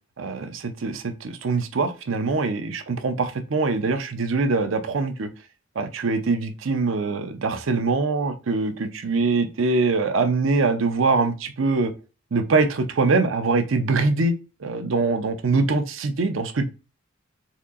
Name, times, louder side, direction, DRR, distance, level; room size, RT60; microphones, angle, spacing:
voice 1, 0.2-5.3 5.8-11.9 12.3-14.3 14.6-16.7, right 3 dB, 65° right, 8 dB, 0.6 m, -23 dB
4.3 x 2.7 x 2.4 m, 0.31 s
head